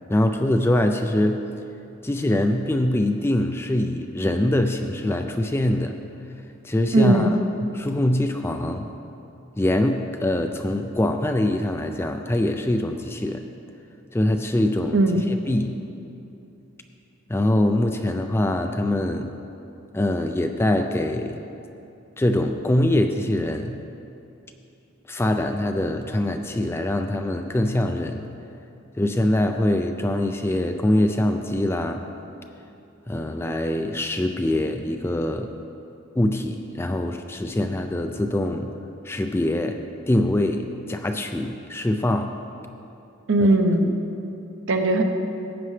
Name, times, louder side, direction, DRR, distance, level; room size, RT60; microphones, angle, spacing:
voice 1, 0.1-1.5 2.0-6.0 6.6-7.3 7.6-8.9 9.6-13.4 14.1-15.8 17.3-19.3 19.9-21.4 22.2-23.8 25.1-28.3 29.0-32.0 33.1-35.5 36.1-38.7 39.0-39.8 40.1-42.4 43.4-43.5, left 1 dB, 10° left, 5 dB, 0.3 m, -23 dB
voice 2, 6.9-7.3 14.9-15.2 43.3-43.9 44.7-45.0, right 2 dB, 60° right, 5 dB, 0.8 m, -18 dB
15.0 x 9.2 x 3.2 m, 2.9 s
head